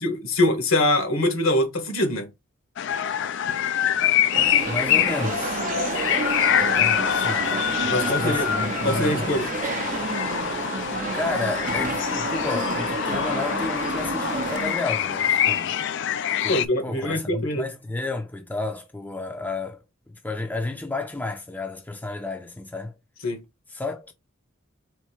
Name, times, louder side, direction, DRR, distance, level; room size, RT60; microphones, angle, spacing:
voice 1, 0.0-2.3 7.9-8.5 8.8-9.5 16.5-17.7 23.2-23.4, left 1 dB, 75° left, 1.7 m, -23 dB
sound 1, 2.8-16.7, left 10 dB, 60° left, 0.4 m, -25 dB
sound 2, 4.3-14.8, right 4 dB, 40° right, 0.5 m, -30 dB
voice 2, 4.7-5.6 6.6-7.5 7.8-9.5 11.1-15.8 16.4-22.9 23.7-24.1, left 2 dB, 10° left, 0.5 m, -32 dB
4.4 x 2.7 x 4.4 m
head